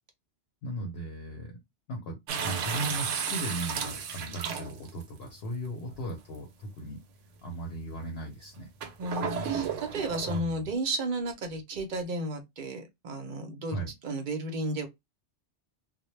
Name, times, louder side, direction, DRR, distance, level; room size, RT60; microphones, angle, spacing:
voice 1, 0.6-1.5 1.9-7.0 7.4-8.7 10.3-10.7 13.7-13.9, right 1 dB, 65° left, 0.8 m, -37 dB
sound 1, 2.3-5.0 5.9-6.0 8.8-10.4, right 6 dB, 80° right, 0.9 m, -33 dB
voice 2, 9.0-14.9, right 2 dB, 55° right, 0.6 m, -33 dB
2.1 x 2.0 x 3.0 m
omnidirectional pair, 1.2 m